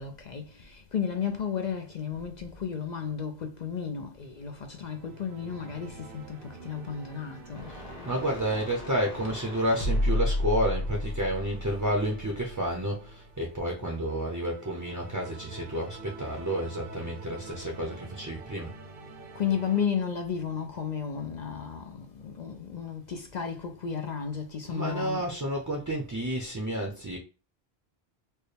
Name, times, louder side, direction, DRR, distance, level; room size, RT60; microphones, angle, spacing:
voice 1, 0.0-7.7 19.3-25.3, left 7 dB, 55° left, 0.5 m, -33 dB
sound 1, 4.4-19.9, right 3 dB, 60° right, 1.0 m, -47 dB
sound 2, 7.5-12.7, left 1 dB, 35° left, 1.1 m, -32 dB
voice 2, 7.7-18.7 24.7-27.2, right 1 dB, 20° right, 0.6 m, -30 dB
4.5 x 2.1 x 3.3 m
omnidirectional pair, 1.1 m